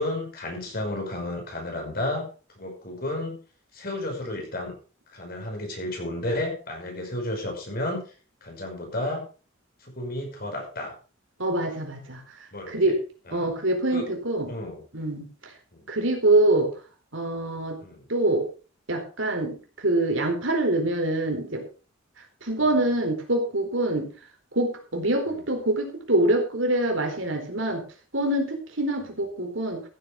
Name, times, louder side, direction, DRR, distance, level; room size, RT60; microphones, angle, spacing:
voice 1, 0.0-2.3 2.6-3.4 3.7-4.8 5.1-8.1 8.4-9.2 9.8-10.9 12.5-12.9 13.3-13.5 13.9-14.1 14.5-14.8 15.7-15.8 17.8-18.1, left 1 dB, 50° left, 2 dB, 5.9 m, -32 dB
voice 2, 11.4-12.2 12.7-13.0 13.3-14.5 14.9-15.5 15.9-16.7 17.1-17.8 18.1-18.5 18.9-21.6 22.4-24.1 24.5-27.8 28.1-29.8, right 1 dB, 75° right, 3 dB, 4.3 m, -25 dB
15.0 x 9.6 x 4.9 m, 0.36 s
head